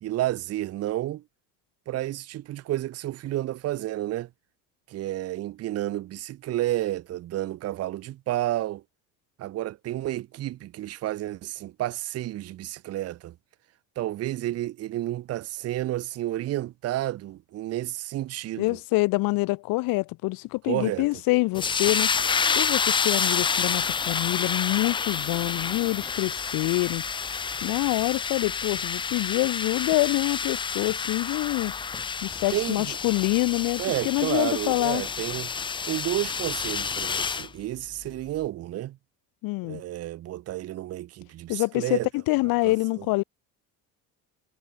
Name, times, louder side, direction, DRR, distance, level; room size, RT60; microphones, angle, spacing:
voice 1, 0.0-1.2 1.9-4.3 4.9-8.8 9.4-13.3 14.0-18.8 20.7-21.1 32.5-33.0 33.8-35.5 35.8-39.0 39.6-42.1 42.6-43.1, right 14 dB, 40° right, 1.1 m, -31 dB
voice 2, 18.6-22.1 22.5-27.0 27.6-31.7 32.2-35.0 39.4-39.8 41.5-43.2, left 22 dB, 70° left, 1.3 m, -26 dB
sound 1, 21.5-37.5, left 6 dB, 15° left, 0.4 m, -29 dB
cardioid pair, 165°, 36 cm